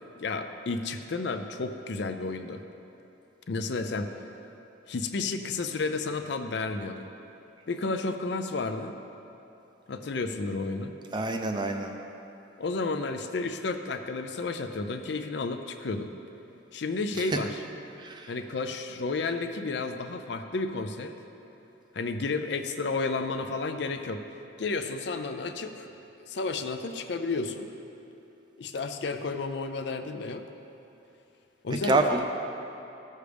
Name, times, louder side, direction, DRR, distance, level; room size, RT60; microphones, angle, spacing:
voice 1, 0.2-2.6 3.5-4.1 4.9-7.1 7.7-9.0 9.9-10.9 12.6-16.1 16.7-17.6 18.3-21.1 21.9-24.2 24.6-25.9 26.2-27.7 28.6-30.5 31.6-32.2, left 3 dB, 60° left, 7 dB, 0.5 m, -32 dB
voice 2, 11.1-11.9 18.0-18.3 31.8-32.2, right 2 dB, 25° right, 4 dB, 0.4 m, -26 dB
14.0 x 6.5 x 3.4 m, 2.9 s
head